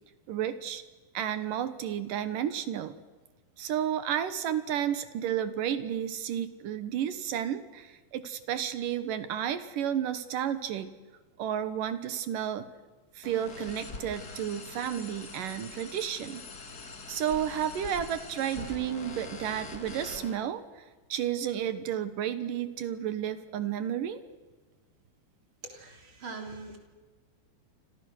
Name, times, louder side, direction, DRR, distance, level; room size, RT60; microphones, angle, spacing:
voice 1, 0.3-0.8 1.1-2.9 3.6-10.9 11.4-12.7 13.2-16.4 17.1-24.2, right 10 dB, 65° right, 12 dB, 2.5 m, -32 dB
sound 1, 13.2-20.3, left 3 dB, 35° left, 1.7 m, -43 dB
voice 2, 25.6-26.8, right 3 dB, 30° right, 3 dB, 4.0 m, -42 dB
29.5 x 26.5 x 6.4 m, 1.3 s
omnidirectional pair, 4.9 m